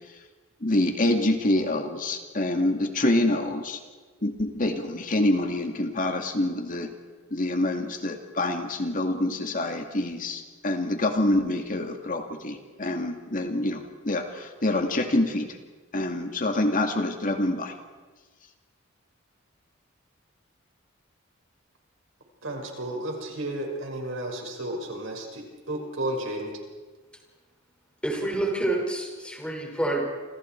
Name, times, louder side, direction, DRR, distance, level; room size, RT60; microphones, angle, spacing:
voice 1, 0.6-3.8 4.2-6.9 7.3-15.5 15.9-17.7, left 1 dB, 40° left, 4 dB, 2.2 m, -26 dB
voice 2, 22.4-26.5, right 1 dB, 70° right, 2 dB, 5.6 m, -33 dB
voice 3, 28.0-30.0, right 1 dB, 5° left, 0 dB, 5.5 m, -28 dB
29.5 x 27.0 x 4.6 m, 1.3 s
head